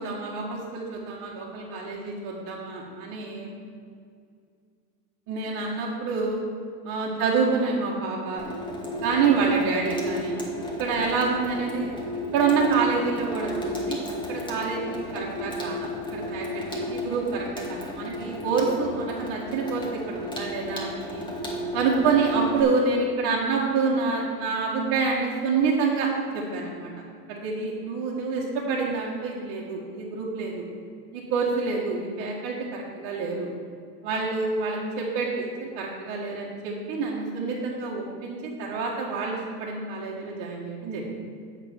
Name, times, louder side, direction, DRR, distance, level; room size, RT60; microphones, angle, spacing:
voice 1, 0.0-3.5 5.3-6.4 6.8-8.4 9.0-10.4 10.8-11.9 12.3-14.0 14.3-21.2 21.7-26.1 26.3-26.9 27.3-30.7 31.1-33.5 34.0-41.0, right 4 dB, 40° right, -6 dB, 1.7 m, -27 dB
Water tap faucet / Sink (filling or washing), 8.4-22.6, left 1 dB, 10° left, 1.4 m, -33 dB
8.2 x 6.1 x 7.0 m, 2.3 s
supercardioid pair, 145°, 48 cm